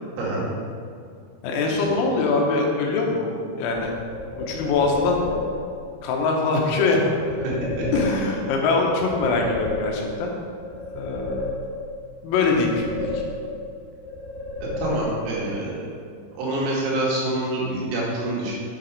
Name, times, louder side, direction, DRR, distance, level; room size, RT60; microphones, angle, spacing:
voice 1, 1.4-3.3 3.6-4.0 4.4-5.2 6.0-7.0 7.9-10.3 11.0-11.5 12.2-13.2, left 3 dB, 85° left, 0 dB, 3.9 m, -23 dB
sound 1, 3.8-5.7 7.2-8.6 8.9-10.3 10.6-12.0 12.3-13.7 14.0-15.4, left 2 dB, 60° left, 3.8 m, -31 dB
voice 2, 7.4-7.9 14.8-15.8 16.4-18.5, right 1 dB, 85° right, -6 dB, 5.1 m, -26 dB
9.8 x 7.8 x 4.9 m, 2.3 s
omnidirectional pair, 6.0 m